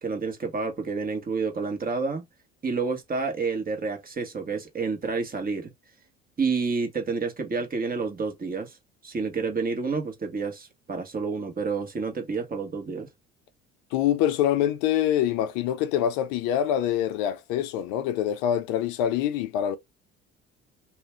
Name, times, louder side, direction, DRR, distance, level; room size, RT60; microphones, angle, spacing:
voice 1, 0.0-2.2 2.6-5.7 6.4-8.7 9.0-13.1, right 4 dB, 30° right, 1.1 m, -29 dB
voice 2, 13.9-19.8, left 10 dB, 75° left, 0.6 m, -25 dB
2.5 x 2.2 x 3.3 m
hypercardioid pair, 70°, 32 cm